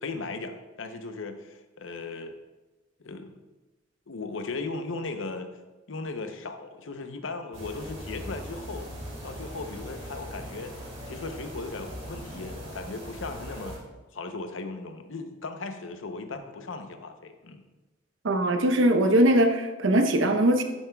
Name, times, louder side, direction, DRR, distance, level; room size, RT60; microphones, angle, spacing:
voice 1, 0.0-2.3 3.0-3.3 4.1-5.5 5.9-8.9 9.2-10.7 11.1-13.8 14.1-17.6, left 3 dB, 80° left, 7 dB, 0.7 m, -37 dB
sound 1, 7.5-13.8, equal, 35° right, 2.7 m, -40 dB
voice 2, 18.2-20.6, right 1 dB, 80° right, 6 dB, 0.8 m, -21 dB
11.5 x 7.1 x 2.3 m, 1.1 s
head